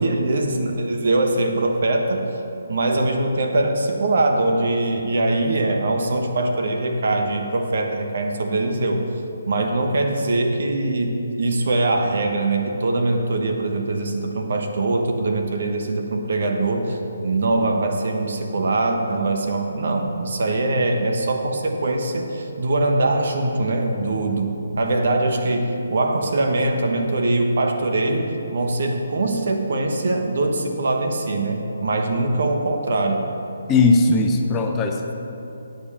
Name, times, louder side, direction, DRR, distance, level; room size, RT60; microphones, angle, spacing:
voice 1, 0.0-2.2 2.7-9.0 9.5-33.3, right 2 dB, 60° right, 3 dB, 1.1 m, -22 dB
voice 2, 33.7-35.1, left 3 dB, 15° left, 3 dB, 0.6 m, -18 dB
8.5 x 5.1 x 7.3 m, 2.9 s
figure-of-eight pair, 145°, 0 cm